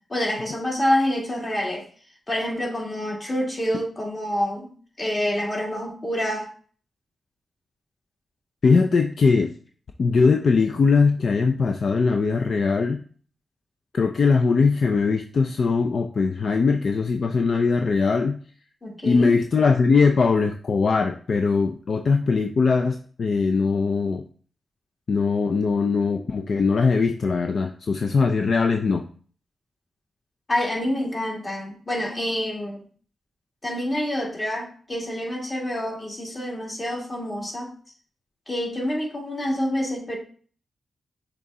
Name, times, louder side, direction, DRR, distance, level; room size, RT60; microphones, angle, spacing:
voice 1, 0.1-1.8 2.3-4.7 5.0-6.5 18.8-19.3 30.5-32.8 33.6-37.7 38.5-40.2, left 1 dB, 30° left, -2 dB, 2.6 m, -27 dB
voice 2, 8.6-9.5 10.0-13.0 13.9-18.4 19.0-24.2 25.1-29.0, left 4 dB, 65° left, 5 dB, 0.5 m, -21 dB
6.8 x 3.7 x 3.8 m, 0.44 s
cardioid pair, 60°, 0 cm